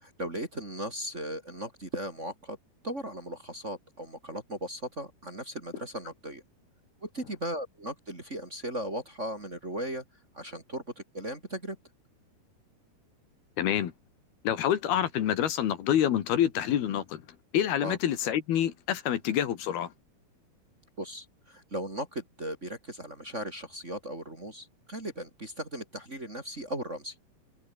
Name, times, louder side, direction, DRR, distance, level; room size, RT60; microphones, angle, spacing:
voice 1, 0.0-2.6 2.8-6.4 7.0-10.0 10.3-11.8 17.8-18.0 21.0-27.1, right 1 dB, 20° right, 2.8 m, -37 dB
voice 2, 13.6-13.9 14.5-17.2 17.5-19.9, left 10 dB, 75° left, 3.8 m, -27 dB
omnidirectional pair, 4.6 m